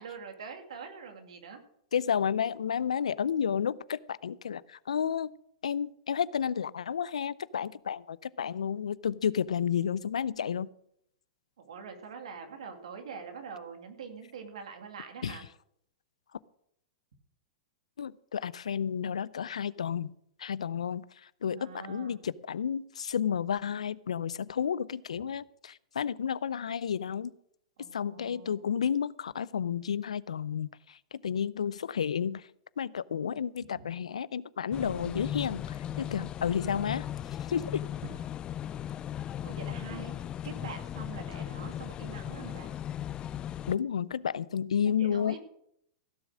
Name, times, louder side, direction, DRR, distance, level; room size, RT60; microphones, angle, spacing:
voice 1, 0.0-1.6 11.6-15.4 21.5-22.2 27.8-28.7 33.7-33.9 39.0-39.1 39.4-40.1 40.4-42.7 44.8-45.4, right 5 dB, 75° right, 5 dB, 2.4 m, -44 dB
voice 2, 1.9-5.3 5.6-10.7 15.2-15.4 18.0-20.1 20.4-27.3 27.9-32.5 32.8-37.0 37.5-37.8 43.7-45.4, left 8 dB, 85° left, 19 dB, 0.5 m, -31 dB
sound 1, 34.7-43.7, left 11 dB, 30° left, 0.4 m, -37 dB
16.0 x 7.2 x 6.2 m, 0.72 s
hypercardioid pair, 110°, 3 cm